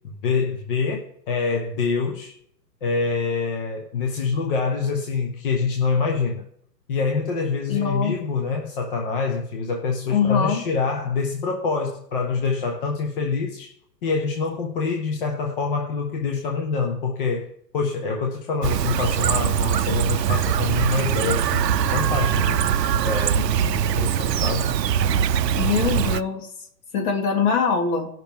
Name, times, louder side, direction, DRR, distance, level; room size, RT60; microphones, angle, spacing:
voice 1, 0.2-2.3 2.8-6.4 6.9-13.7 14.0-17.5 17.7-22.7 23.0-24.8, left 4 dB, 35° left, 1.2 m, -25 dB
voice 2, 7.7-8.2 10.1-10.6 25.6-26.5 26.9-28.1, left 6 dB, 55° left, 3.5 m, -22 dB
Chirp tweet, 18.6-26.2, right 9 dB, 75° right, 0.7 m, -22 dB
18.0 x 6.1 x 3.6 m
hypercardioid pair, 160°, 50 cm